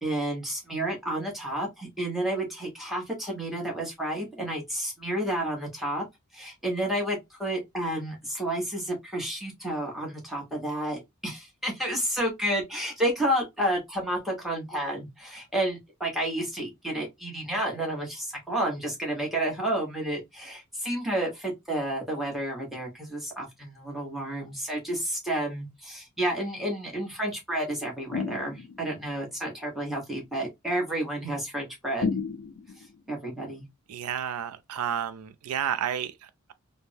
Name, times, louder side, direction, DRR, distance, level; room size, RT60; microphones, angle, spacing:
voice 1, 0.0-6.0 6.3-32.1 33.1-33.6, right 1 dB, ahead, 1.1 m, -31 dB
sound 1, 28.1-29.0 32.0-32.9, left 5 dB, 55° left, 0.4 m, -32 dB
voice 2, 33.9-36.5, right 9 dB, 85° right, 0.4 m, -31 dB
3.3 x 2.1 x 2.6 m
head